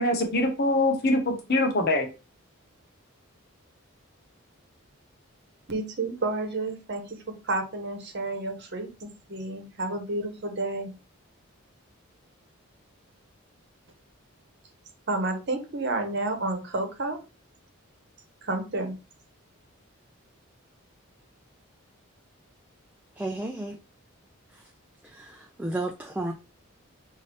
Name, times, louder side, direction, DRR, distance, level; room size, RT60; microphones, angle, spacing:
voice 1, 0.0-2.1, left 1 dB, 50° left, 1.0 m, -24 dB
voice 2, 5.7-7.2 7.4-10.9 15.1-17.2 18.4-18.9, right 2 dB, 55° right, 0.9 m, -30 dB
voice 3, 23.2-23.8 25.1-26.3, right 2 dB, 5° right, 0.4 m, -32 dB
5.2 x 2.7 x 3.3 m
head